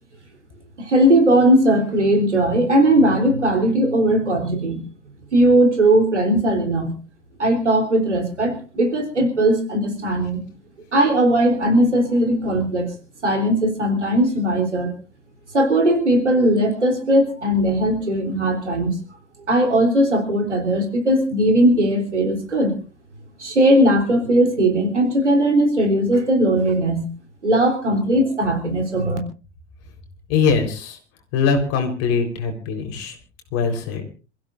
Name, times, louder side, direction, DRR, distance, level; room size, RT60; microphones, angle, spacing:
voice 1, 0.8-4.8 5.3-7.0 7.4-10.4 10.9-12.9 13.2-14.9 15.5-18.9 19.5-22.8 23.4-27.1 27.4-29.2, right 1 dB, 80° right, 4 dB, 3.8 m, -18 dB
voice 2, 30.3-31.0 31.3-33.2 33.5-34.0, left 5 dB, 45° left, 4 dB, 4.2 m, -21 dB
27.5 x 15.5 x 2.6 m, 0.34 s
figure-of-eight pair, 85°, 35 cm